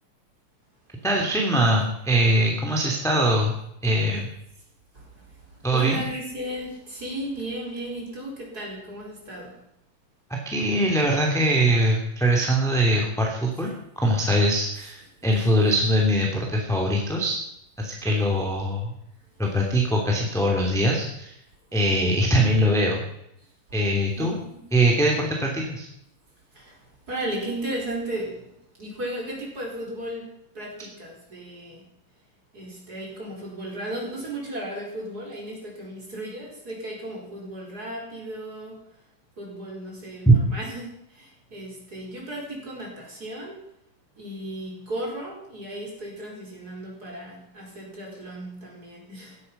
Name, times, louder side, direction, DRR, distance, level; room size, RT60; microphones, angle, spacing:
voice 1, 1.0-3.6 3.8-4.3 5.6-6.0 10.4-17.4 17.8-18.9 19.4-21.3 21.7-23.0 23.7-24.3 24.7-25.9 40.3-40.4, right 1 dB, ahead, -1 dB, 2.2 m, -22 dB
voice 2, 4.9-9.6 13.7-13.8 24.2-24.7 26.5-31.8 32.5-38.8 39.4-43.6 44.2-49.4, right 1 dB, 25° right, -2 dB, 4.9 m, -35 dB
16.5 x 12.5 x 5.5 m, 0.76 s
omnidirectional pair, 3.9 m